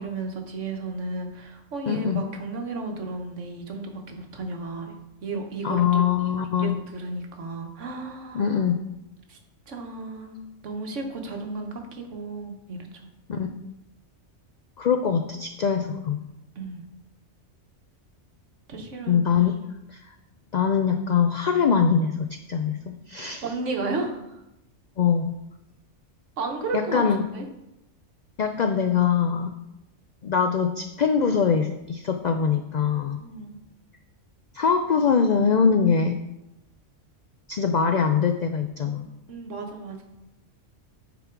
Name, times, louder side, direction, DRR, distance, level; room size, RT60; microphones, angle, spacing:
voice 1, 0.0-5.9 6.6-8.6 9.3-9.4 9.7-10.4 10.6-12.9 13.3-13.5 16.6-16.8 18.7-19.5 23.4-24.2 26.4-27.0 27.3-27.4 33.2-33.6 39.3-40.0, right 3 dB, 75° right, 3 dB, 1.4 m, -33 dB
voice 2, 1.9-2.2 5.6-6.7 8.3-8.8 13.3-13.5 14.8-16.2 19.1-19.6 19.9-20.1 20.5-22.8 23.1-23.4 25.0-25.3 26.7-27.2 28.4-29.5 30.2-33.2 34.5-36.2 37.5-39.1, left 6 dB, 75° left, 7 dB, 0.4 m, -23 dB
9.8 x 4.1 x 4.5 m, 0.90 s
omnidirectional pair, 1.3 m